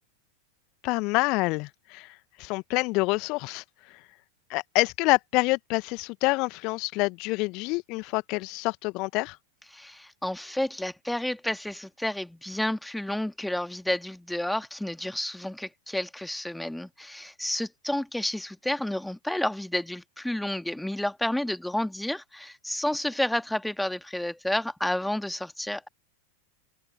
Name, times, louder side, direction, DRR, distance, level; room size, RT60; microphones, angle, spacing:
voice 1, 0.8-4.0 4.5-9.4, left 25 dB, 40° left, 1.4 m, -27 dB
voice 2, 9.7-25.9, left 1 dB, 5° left, 1.8 m, -30 dB
figure-of-eight pair, 90°, 0 cm